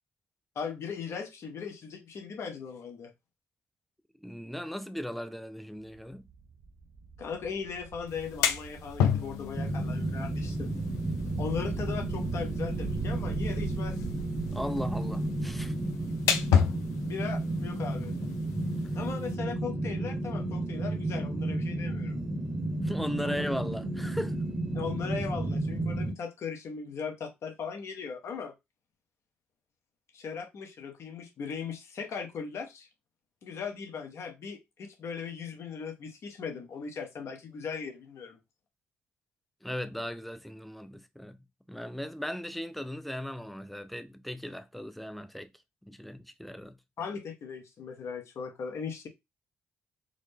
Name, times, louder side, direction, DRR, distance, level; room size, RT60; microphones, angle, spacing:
voice 1, 0.5-3.1 7.2-10.7 11.4-14.1 17.1-18.1 18.9-22.2 23.2-23.3 24.7-28.5 30.1-32.9 33.4-38.4 47.0-49.1, left 6 dB, 60° left, 1.0 m, -38 dB
voice 2, 4.2-6.3 14.5-15.8 18.8-19.0 22.8-24.4 39.6-41.4 41.7-45.5 45.8-46.8, equal, ahead, 0.5 m, -37 dB
sound 1, 5.8-19.5, right 5 dB, 60° right, 0.5 m, -41 dB
sound 2, 8.1-19.3, left 8 dB, 85° left, 0.4 m, -33 dB
sound 3, 9.5-26.1, right 1 dB, 15° right, 0.9 m, -32 dB
3.8 x 2.1 x 3.3 m
supercardioid pair, 65°, 5 cm